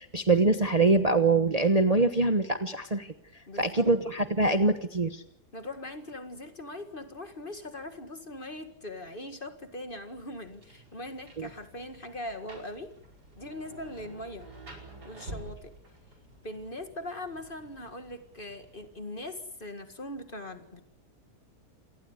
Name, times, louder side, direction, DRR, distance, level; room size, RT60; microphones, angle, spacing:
voice 1, 0.0-3.1 3.6-5.2 11.4-11.5, right 3 dB, 25° right, 8 dB, 1.1 m, -24 dB
voice 2, 3.5-3.9 5.5-12.9 13.4-14.5 15.0-15.8 16.4-20.9, left 1 dB, 30° left, 8 dB, 2.1 m, -41 dB
Rain, 10.1-19.1, right 2 dB, 75° right, 5.7 m, -50 dB
27.5 x 19.5 x 8.3 m, 0.73 s
omnidirectional pair, 1.7 m